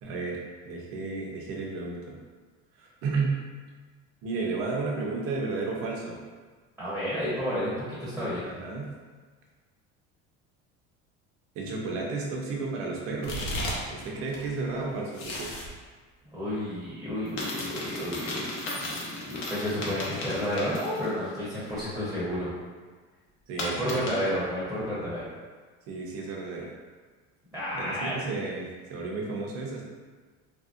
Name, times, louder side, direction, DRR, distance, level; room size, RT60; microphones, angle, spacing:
voice 1, 0.0-0.4 0.7-2.2 2.8-3.4 4.2-6.2 8.4-8.9 11.5-13.5 13.9-15.5 23.5-24.1 25.9-26.7 27.7-29.8, right 3 dB, 50° right, -2 dB, 0.6 m, -32 dB
voice 2, 6.8-8.4 16.3-22.5 23.6-25.3 27.5-28.2, equal, ahead, -10 dB, 0.7 m, -31 dB
sound 1, 13.2-14.0 14.3-15.7 17.3-21.3 21.6-21.7 23.6-24.4, left 1 dB, 45° left, 0.7 m, -35 dB
3.1 x 2.7 x 2.4 m, 1.4 s
cardioid pair, 160°, 30 cm